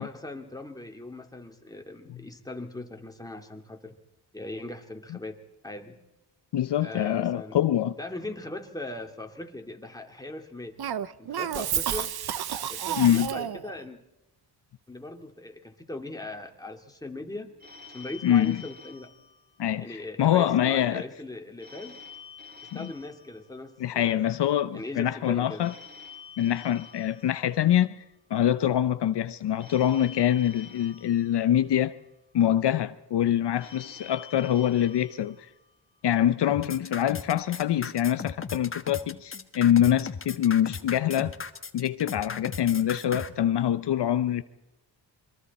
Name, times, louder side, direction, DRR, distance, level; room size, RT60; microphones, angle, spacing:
voice 1, 0.0-3.9 4.3-5.4 5.6-6.0 6.8-7.6 8.0-10.8 11.2-12.1 12.7-14.0 14.9-17.5 17.9-19.1 19.8-22.0 22.7-24.3 24.7-25.6, left 2 dB, 10° left, 2.4 m, -39 dB
voice 2, 6.5-7.9 13.0-13.3 18.2-18.6 19.6-21.0 22.7-22.9 23.8-25.7 26.4-28.0 28.3-31.9 32.3-35.4 36.0-41.3 41.7-44.4, left 11 dB, 70° left, 0.8 m, -24 dB
Cough, 10.8-13.7, right 9 dB, 60° right, 0.9 m, -30 dB
Telephone, 17.6-20.1 21.6-24.1 25.6-28.1 29.6-32.1 33.6-36.1, left 6 dB, 20° right, 3.7 m, -49 dB
sound 1, 36.5-43.3, left 5 dB, 30° left, 1.2 m, -37 dB
27.5 x 22.5 x 4.2 m
cardioid pair, 85°, 42 cm